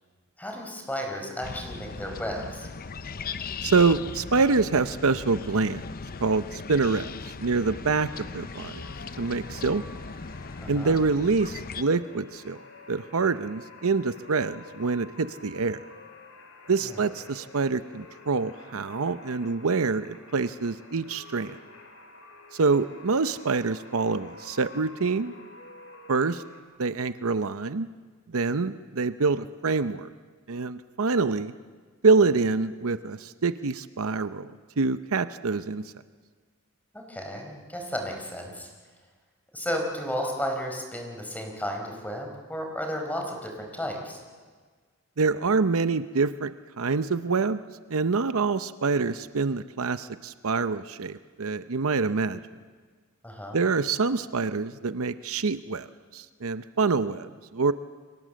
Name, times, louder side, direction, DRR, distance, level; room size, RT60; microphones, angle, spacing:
voice 1, 0.4-2.7 10.6-11.0 16.8-17.0 36.9-38.7 39.5-44.2 53.2-53.6, equal, 5° left, 2 dB, 4.6 m, -33 dB
sound 1, 1.4-11.8, left 4 dB, 40° left, 0.7 m, -38 dB
voice 2, 3.6-5.8 6.2-7.1 7.4-8.8 9.2-9.8 10.7-12.6 12.9-15.8 16.7-21.6 22.5-25.3 26.1-26.4 26.8-27.9 28.3-30.1 30.5-31.5 32.0-34.5 34.8-35.8 45.2-47.6 47.9-52.4 53.5-55.9 56.1-57.7, right 4 dB, 65° right, 12 dB, 0.8 m, -26 dB
sound 2, 8.0-26.6, left 3 dB, 70° left, 4.5 m, -49 dB
29.5 x 23.5 x 7.7 m, 1.5 s
head